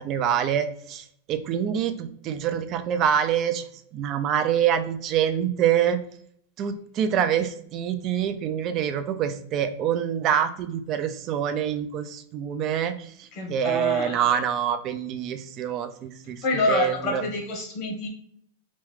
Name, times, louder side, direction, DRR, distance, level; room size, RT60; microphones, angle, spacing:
voice 1, 0.0-3.7 3.9-6.0 6.6-17.2, right 9 dB, 35° right, 9 dB, 0.3 m, -26 dB
voice 2, 13.3-14.4 16.4-18.1, left 2 dB, 40° left, 1 dB, 1.0 m, -27 dB
3.0 x 2.3 x 3.2 m, 0.66 s
supercardioid pair, 145°, 0 cm